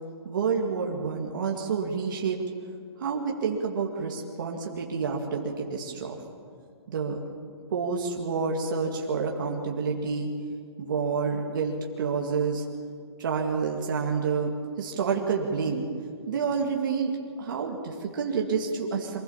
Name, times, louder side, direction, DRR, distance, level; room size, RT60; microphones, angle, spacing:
voice 1, 0.2-2.4 3.0-6.2 6.9-7.2 7.7-10.3 10.8-12.6 13.2-15.9 16.3-19.2, right 5 dB, 45° right, 0 dB, 2.2 m, -28 dB
24.5 x 15.0 x 7.2 m, 2.3 s
hypercardioid pair, 170°, 14 cm